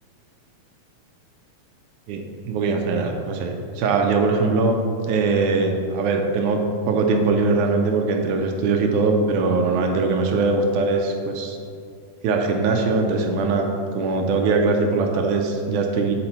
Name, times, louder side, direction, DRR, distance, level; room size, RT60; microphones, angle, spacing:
voice 1, 2.1-4.8 5.1-11.6 12.2-16.1, right 3 dB, 80° right, 3 dB, 1.9 m, -21 dB
7.8 x 4.2 x 4.2 m, 2.3 s
omnidirectional pair, 3.7 m